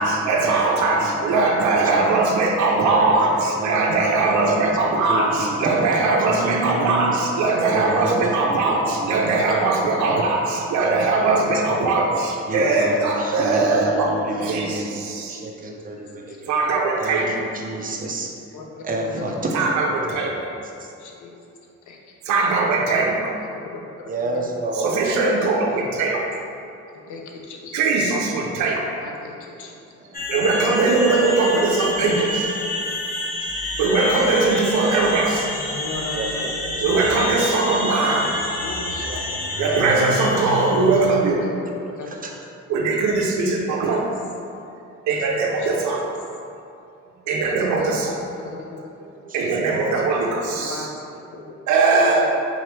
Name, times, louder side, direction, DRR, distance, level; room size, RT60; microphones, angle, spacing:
voice 1, 0.0-14.1 14.4-15.4 16.5-17.3 19.5-20.4 22.2-23.3 24.8-26.3 27.7-28.9 30.3-32.5 33.8-35.5 36.8-38.3 39.6-41.4 42.7-44.1 45.1-46.1 47.3-48.1 49.3-50.9 51.7-52.3, right 3 dB, 70° right, -1 dB, 0.6 m, -20 dB
voice 2, 1.7-2.1 2.6-4.8 5.1-7.3 7.7-9.6 9.9-10.2 10.8-11.9 12.5-14.9 15.3-16.6 17.0-18.3 18.8-19.7 20.1-20.2 20.8-20.9 24.1-25.0 30.0-30.2 33.5-33.6 36.1-37.0 38.9-39.9 42.1-42.3 49.3-49.4, right 2 dB, 30° right, 1 dB, 0.5 m, -30 dB
voice 3, 6.6-7.3 7.8-7.9 9.3-9.5 10.0-10.3 12.5-12.7 13.4-13.5 14.3-14.9 16.3-16.4 18.5-19.6 21.0-21.3 21.9-22.0 23.5-24.5 26.9-27.8 29.0-29.7 32.1-32.7 35.8-36.5 37.9-39.4 40.9-42.2 43.7-43.9 45.6-45.9 47.5-49.1 50.5-51.6 52.2-52.3, left 3 dB, 75° left, 1 dB, 0.6 m, -37 dB
sound 1, 30.1-41.1, left 2 dB, 30° left, 0.8 m, -28 dB
3.9 x 3.0 x 3.2 m, 2.6 s
cardioid pair, 90°, 30 cm